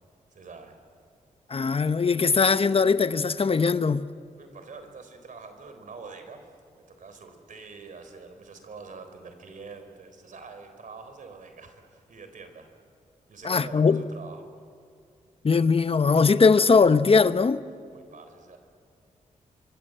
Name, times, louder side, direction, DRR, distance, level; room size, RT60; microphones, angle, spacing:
voice 1, 0.3-0.7 4.4-6.5 6.7-12.7 13.3-14.5 17.9-18.6, right 4 dB, 70° right, 4.0 m, -45 dB
voice 2, 1.5-4.1 13.4-14.0 15.4-17.6, left 5 dB, 45° left, 0.8 m, -20 dB
25.5 x 25.0 x 7.9 m
cardioid pair, 65°, 14 cm